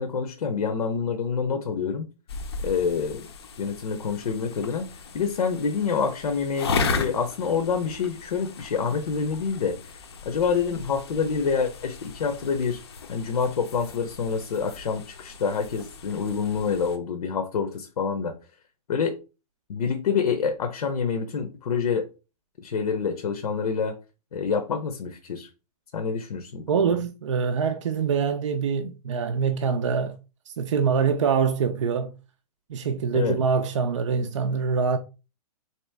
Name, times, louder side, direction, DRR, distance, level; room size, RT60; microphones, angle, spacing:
voice 1, 0.0-2.1 2.6-3.3 3.6-10.0 10.2-12.8 13.1-18.3 18.9-19.2 19.7-22.1 22.6-24.0 24.3-25.5 25.9-27.0 33.1-33.4, left 6 dB, 85° left, 0.8 m, -27 dB
sound 1, 2.3-17.0, left 4 dB, 40° left, 0.5 m, -36 dB
voice 2, 26.7-30.2 30.5-32.1 32.7-35.0, right 6 dB, 50° right, 0.4 m, -24 dB
3.9 x 2.9 x 3.3 m
hypercardioid pair, 180°, 20 cm